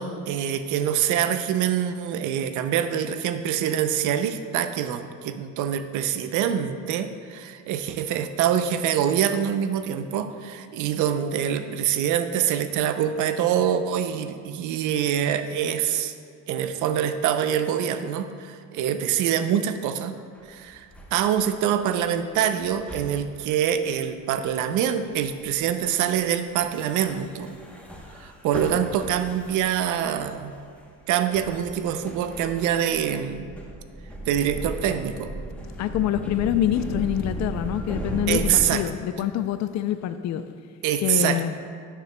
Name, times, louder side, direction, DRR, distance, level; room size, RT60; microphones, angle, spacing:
voice 1, 0.0-16.1 16.5-20.1 20.5-27.5 28.2-30.5 31.1-33.6 34.3-35.3 38.3-38.8 40.8-41.6, right 9 dB, 80° right, 9 dB, 0.5 m, -25 dB
sound 1, 20.4-21.1 21.6-21.9 22.6-23.5 24.6-24.8 25.2-25.8 26.1-26.5 26.7-30.8 31.3-38.7, right 1 dB, 5° left, 0.9 m, -36 dB
voice 2, 35.8-40.4 41.0-41.5, left 11 dB, 65° left, 11 dB, 0.5 m, -25 dB
11.5 x 6.8 x 2.2 m, 2.2 s
cardioid pair, 100°, 30 cm